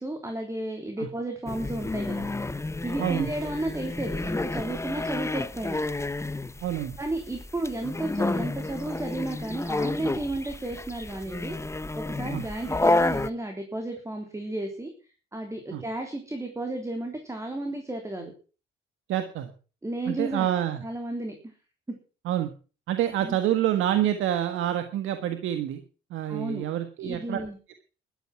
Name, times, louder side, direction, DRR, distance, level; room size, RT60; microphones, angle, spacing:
voice 1, 0.0-2.3 2.8-5.8 7.0-11.6 11.9-14.9 15.3-18.3 19.8-20.5 20.8-21.3 21.9-22.0 23.2-23.4 26.3-26.7 27.0-27.6, right 1 dB, 15° right, 4 dB, 3.4 m, -33 dB
sound 1, 1.5-13.3, left 2 dB, 15° left, 0.9 m, -30 dB
voice 2, 3.0-3.3 6.6-7.0 12.3-12.4 15.7-15.8 19.1-19.5 20.1-20.8 22.2-22.5 22.9-25.8 26.1-27.4, right 11 dB, 85° right, 8 dB, 1.6 m, -27 dB
12.5 x 12.5 x 6.0 m, 0.37 s
cardioid pair, 90°, 20 cm